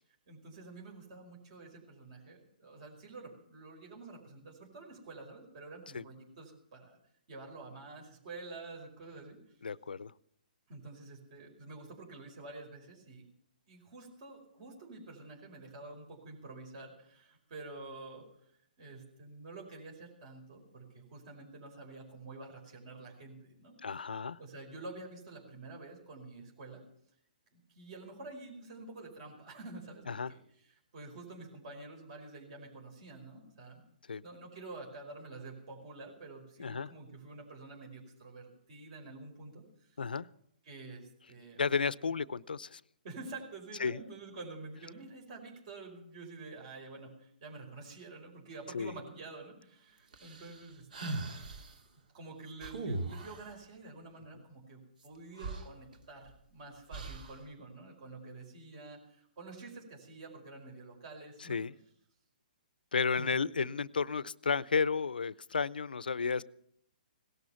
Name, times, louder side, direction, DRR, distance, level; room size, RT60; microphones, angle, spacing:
voice 1, 0.3-7.0 7.3-9.4 10.7-13.2 13.7-18.2 18.8-23.8 24.4-26.8 27.5-30.4 30.9-33.8 34.2-40.0 40.6-41.6 43.0-51.3 52.1-61.6 63.1-63.7, right 3 dB, 45° right, 0 dB, 5.2 m, -48 dB
voice 2, 9.6-10.1 23.8-24.4 30.1-30.3 34.1-34.2 36.6-36.9 40.0-40.3 41.6-42.8 43.8-44.0 48.7-48.9 61.4-61.7 62.9-66.4, left 5 dB, 85° left, 21 dB, 0.6 m, -32 dB
sound 1, 50.1-51.7 52.6-53.5 55.0-55.1 55.4-56.4 56.9-57.4, right 2 dB, 65° right, 2.7 m, -39 dB
18.0 x 12.5 x 5.8 m, 0.72 s
hypercardioid pair, 140°, 5 cm